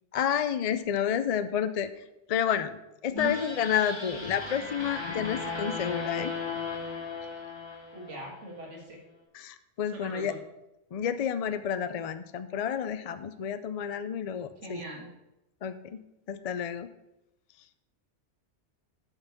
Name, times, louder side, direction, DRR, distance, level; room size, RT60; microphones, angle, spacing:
voice 1, 0.1-6.3 9.3-10.3 10.9-14.8 15.6-16.0 16.3-16.9, left 8 dB, 60° left, 11 dB, 0.4 m, -30 dB
sound 1, 3.2-8.4, left 4 dB, 20° left, 1.7 m, -36 dB
voice 2, 7.9-9.0 9.9-10.4 14.6-15.1, equal, 80° right, 0 dB, 2.1 m, -39 dB
8.0 x 5.8 x 6.7 m, 0.92 s
omnidirectional pair, 1.2 m